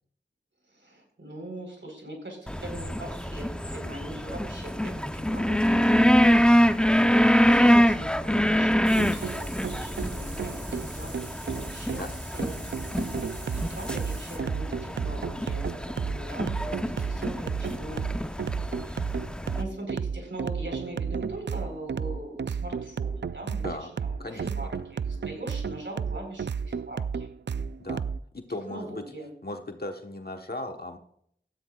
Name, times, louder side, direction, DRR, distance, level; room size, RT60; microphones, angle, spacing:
voice 1, 0.7-6.5 7.0-12.0 12.3-12.5 13.5-15.7 16.0-19.1 19.5-27.3 28.7-29.3, right 1 dB, 90° right, 2 dB, 4.2 m, -41 dB
sound 1, 2.5-19.6, equal, 5° left, 0.7 m, -25 dB
sound 2, 8.8-14.4, right 2 dB, 45° right, 1.8 m, -45 dB
sound 3, 9.0-28.2, right 6 dB, 70° right, 0.4 m, -33 dB
voice 2, 24.2-24.7 27.8-28.1 28.3-29.0 29.4-31.0, left 2 dB, 55° left, 5 dB, 1.2 m, -37 dB
17.0 x 13.5 x 2.4 m, 0.67 s
wide cardioid pair, 45°, 19 cm